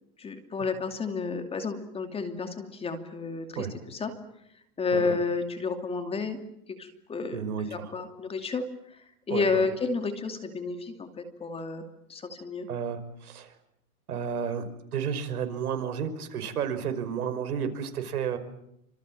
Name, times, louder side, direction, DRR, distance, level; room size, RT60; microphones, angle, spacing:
voice 1, 0.2-4.1 4.8-6.4 6.7-7.4 7.7-8.6 9.3-11.8 12.1-12.7, left 4 dB, 15° left, 7 dB, 2.7 m, -31 dB
voice 2, 7.3-7.9 9.3-9.6 12.7-13.5 14.1-14.7 14.9-18.4, right 7 dB, 80° right, 9 dB, 5.7 m, -32 dB
29.0 x 26.5 x 7.6 m, 0.78 s
hypercardioid pair, 150°, 44 cm